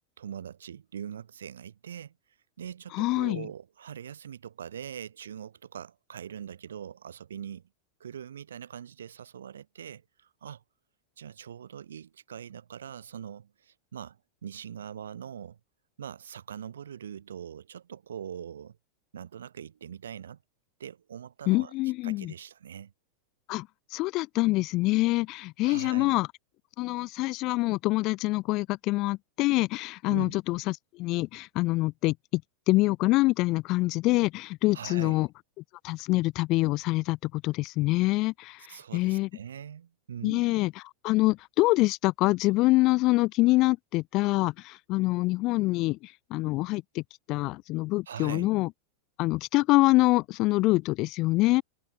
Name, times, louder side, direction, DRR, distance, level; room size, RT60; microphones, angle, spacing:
voice 1, 0.2-2.1 2.6-7.7 8.0-10.6 11.2-14.2 14.4-15.6 16.0-18.8 19.1-20.4 20.8-21.7 22.0-22.9 25.6-26.1 30.1-30.4 34.7-35.2 38.7-40.5 48.1-48.5, right 9 dB, 65° right, 2.1 m, -42 dB
voice 2, 2.9-3.4 21.5-22.3 23.5-26.3 26.8-32.4 32.7-35.3 35.8-39.3 40.2-40.7 41.0-47.0 47.3-48.7 49.2-51.6, left 20 dB, 40° left, 0.4 m, -25 dB
figure-of-eight pair, 90°, 0 cm